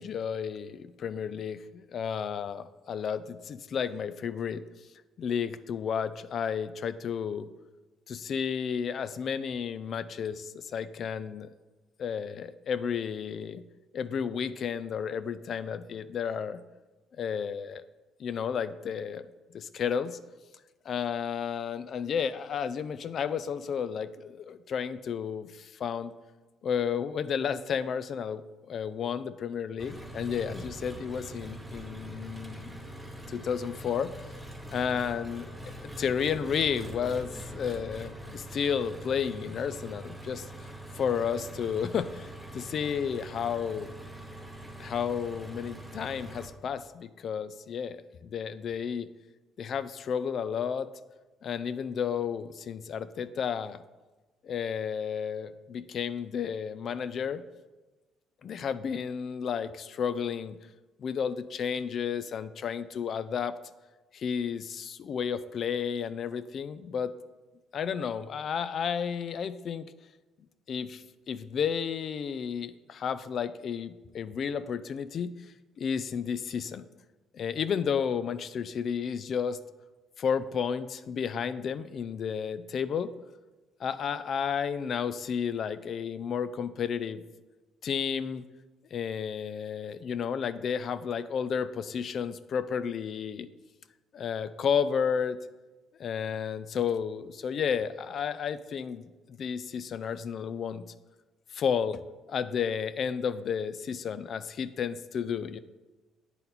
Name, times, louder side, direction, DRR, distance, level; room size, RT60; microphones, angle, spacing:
voice 1, 0.0-4.6 5.2-7.5 8.1-11.5 12.0-13.6 13.9-16.6 17.2-17.8 18.2-19.2 19.5-20.2 20.9-26.1 26.6-32.8 33.3-34.3 34.7-43.9 44.8-49.1 49.6-50.9 51.4-53.8 54.4-57.4 58.4-60.6 61.0-63.6 64.1-67.1 67.7-69.9 70.7-75.3 75.8-76.9 77.3-79.6 80.2-83.1 83.8-87.2 87.8-88.5 88.9-93.5 94.1-95.4 96.0-100.9 101.5-102.0 102.3-105.6, left 7 dB, 55° left, 13 dB, 0.3 m, -32 dB
Engine, 29.8-46.5, right 1 dB, 5° right, 0.8 m, -43 dB
8.8 x 4.1 x 4.1 m, 1.2 s
cardioid pair, 100°, 0 cm